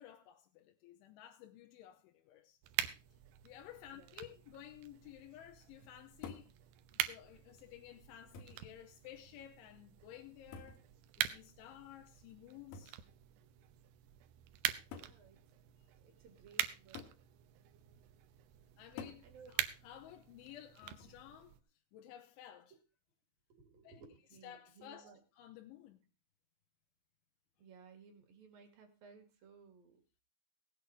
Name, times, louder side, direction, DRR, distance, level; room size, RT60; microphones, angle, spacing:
voice 1, 0.0-2.6 3.4-6.5 6.9-10.8 11.2-13.0 18.8-21.6 21.9-22.7 23.8-24.0 24.4-26.0, left 11 dB, 90° left, 3.3 m, -54 dB
sound 1, 2.6-21.6, right 13 dB, 75° right, 2.5 m, -44 dB
sound 2, 6.2-6.6 7.6-7.7 8.3-8.7 10.5-10.9 12.7-13.0 14.1-14.2 14.9-15.2 17.0-17.2 19.0-19.3 20.8-21.2, left 6 dB, 65° left, 2.6 m, -49 dB
voice 2, 14.9-15.4 15.9-17.0 19.2-19.6 22.7-22.8 23.5-25.2 27.6-30.0, right 5 dB, 55° right, 3.6 m, -59 dB
18.0 x 8.7 x 4.7 m
omnidirectional pair, 5.4 m